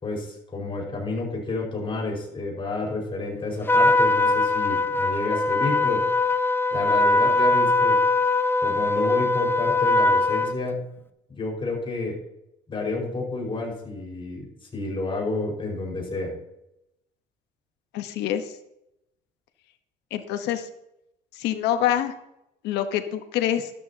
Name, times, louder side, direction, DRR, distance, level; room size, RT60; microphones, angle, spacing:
voice 1, 0.0-6.0 6.7-8.0 8.6-10.8 11.4-12.2 12.7-14.5 14.7-16.3, left 3 dB, 30° left, -2 dB, 5.3 m, -30 dB
Trumpet, 3.7-10.6, left 2 dB, 15° left, 0.7 m, -21 dB
voice 2, 17.9-18.5 20.1-20.7 21.4-22.1 22.6-23.7, left 11 dB, 90° left, 8 dB, 1.2 m, -26 dB
13.0 x 12.5 x 2.9 m, 0.84 s
cardioid pair, 110°, 17 cm